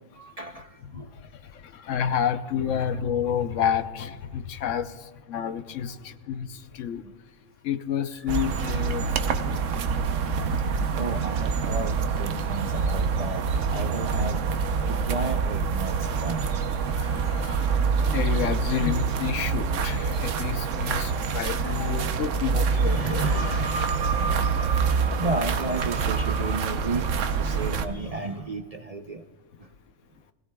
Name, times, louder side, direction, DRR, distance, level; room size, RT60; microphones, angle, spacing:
voice 1, 0.2-1.1 2.7-2.9 9.5-9.7 10.6-10.7 11.0-14.4 14.9-16.4 18.1-18.3 20.6-20.7 21.9-24.7 25.2-29.2, right 3 dB, 40° right, 5 dB, 0.6 m, -34 dB
voice 2, 0.9-7.0 7.6-9.3 10.5-10.6 14.8-14.9 16.8-23.3, left 8 dB, 75° left, 11 dB, 1.0 m, -30 dB
sound 1, 8.3-27.8, right 5 dB, 75° right, 1.1 m, -26 dB
20.5 x 16.0 x 2.3 m, 1.4 s
omnidirectional pair, 1.3 m